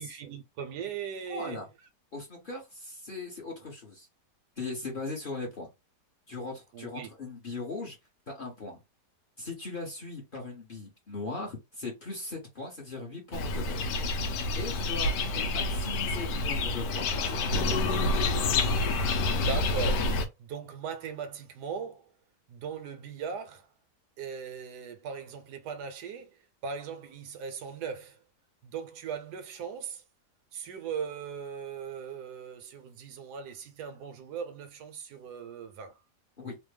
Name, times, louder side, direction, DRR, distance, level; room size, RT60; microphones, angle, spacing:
voice 1, 0.0-1.7 6.7-7.1 15.3-15.5 19.3-22.1 22.5-23.7 24.2-28.2 28.6-30.0 30.5-35.9, right 6 dB, 75° right, 1.2 m, -39 dB
voice 2, 1.3-1.7 2.1-4.1 4.6-5.7 6.3-8.0 8.3-8.8 9.4-13.8 14.6-15.1 15.5-17.9 36.4-36.6, left 3 dB, 40° left, 0.9 m, -39 dB
sound 1, 13.3-20.3, left 2 dB, 85° left, 1.2 m, -28 dB
3.3 x 2.1 x 3.2 m
omnidirectional pair, 1.8 m